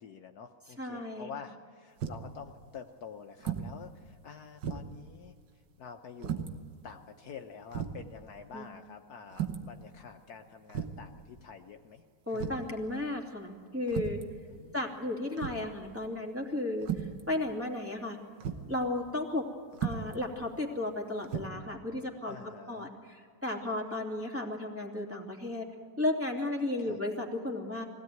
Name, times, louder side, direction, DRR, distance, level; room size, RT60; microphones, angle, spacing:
voice 1, 0.0-5.4 5.8-6.6 6.8-12.0 12.3-12.5 14.5-14.8 22.3-22.9 26.8-27.0, left 6 dB, 65° left, 5 dB, 1.3 m, -48 dB
voice 2, 0.8-1.3 8.5-8.7 12.3-14.2 14.7-18.2 18.7-19.4 19.8-22.4 22.7-25.7 26.0-27.8, left 2 dB, 5° right, -2 dB, 2.7 m, -34 dB
sound 1, 2.0-2.4 3.4-3.8 4.1-4.2 4.6-5.0 6.2-6.5 7.3-7.4 7.7-8.0 9.3-9.7 10.7-11.1 12.4-12.7 13.9-14.3 15.4-15.7 16.8-17.2 18.4-18.7 19.7-20.2 21.2-21.4, right 8 dB, 90° right, 1.8 m, -35 dB
21.5 x 16.5 x 9.3 m, 2.2 s
omnidirectional pair, 1.9 m